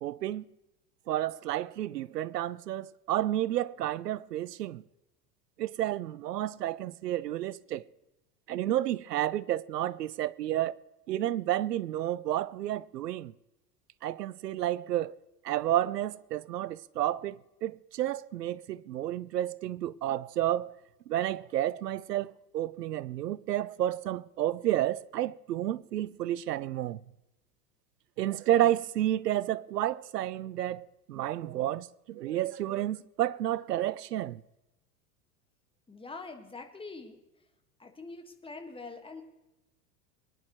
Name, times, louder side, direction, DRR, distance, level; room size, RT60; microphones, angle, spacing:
voice 1, 0.0-0.4 1.1-4.8 5.6-7.8 8.5-10.8 11.1-13.3 14.0-15.1 15.4-20.7 21.1-27.0 28.2-34.4, right 13 dB, 80° right, 0.6 m, -31 dB
voice 2, 35.9-37.4 37.8-39.2, left 3 dB, 10° left, 1.7 m, -44 dB
23.5 x 10.5 x 3.1 m
hypercardioid pair, 85°, 48 cm